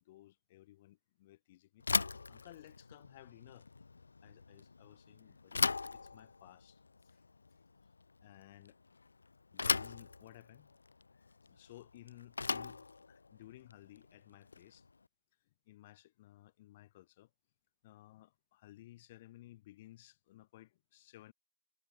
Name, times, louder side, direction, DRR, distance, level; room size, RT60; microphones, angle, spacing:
voice 1, 0.0-3.7 4.2-7.2 8.2-8.8 9.5-10.7 11.1-14.9 15.7-17.3 17.8-21.3, left 15 dB, 15° left, 4.4 m, -58 dB
Bicycle / Thump thud, 1.8-14.9, left 4 dB, 45° left, 0.3 m, -39 dB
figure-of-eight pair, 165°, 0 cm